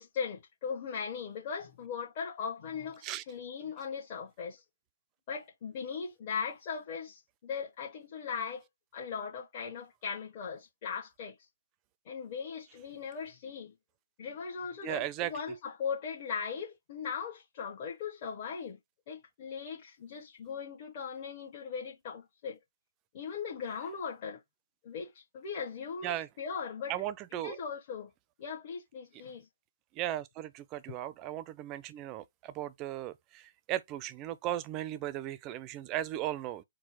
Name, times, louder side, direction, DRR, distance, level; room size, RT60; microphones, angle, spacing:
voice 1, 0.0-4.6 5.3-8.7 8.9-11.5 12.0-13.7 14.2-18.8 19.1-22.6 23.1-24.4 24.8-26.9 27.4-28.1 28.4-29.5, left 6 dB, 40° left, 1.0 m, -39 dB
voice 2, 14.8-15.3 26.0-26.3 26.9-27.6 30.0-36.6, right 13 dB, 25° right, 0.4 m, -36 dB
4.5 x 2.1 x 4.2 m
figure-of-eight pair, 135°, 0 cm